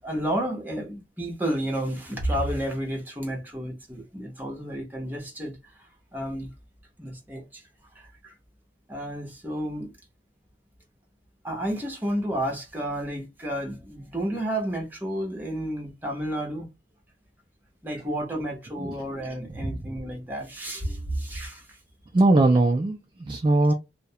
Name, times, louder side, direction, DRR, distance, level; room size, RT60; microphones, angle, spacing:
voice 1, 0.0-6.5 7.0-7.6 7.9-8.3 8.9-9.9 11.4-16.7 17.8-21.8, right 1 dB, 10° right, 0.8 m, -31 dB
voice 2, 22.1-23.7, right 2 dB, 25° right, 0.3 m, -21 dB
2.3 x 2.1 x 2.7 m
head